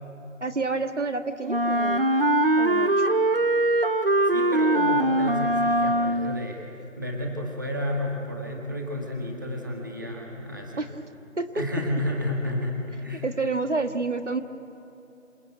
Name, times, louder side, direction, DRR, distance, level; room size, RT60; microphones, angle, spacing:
voice 1, 0.4-2.1 2.6-3.1 10.8-10.9 11.4-11.5 13.1-14.4, right 3 dB, 60° right, 7 dB, 1.6 m, -29 dB
Wind instrument woodwind instrument, 1.5-6.5, right 1 dB, 45° right, 0.8 m, -22 dB
voice 2, 4.3-6.6 7.0-10.9 11.5-13.3, left 1 dB, 15° right, 0 dB, 1.8 m, -31 dB
27.0 x 23.5 x 9.3 m, 2.9 s
figure-of-eight pair, 175°, 40 cm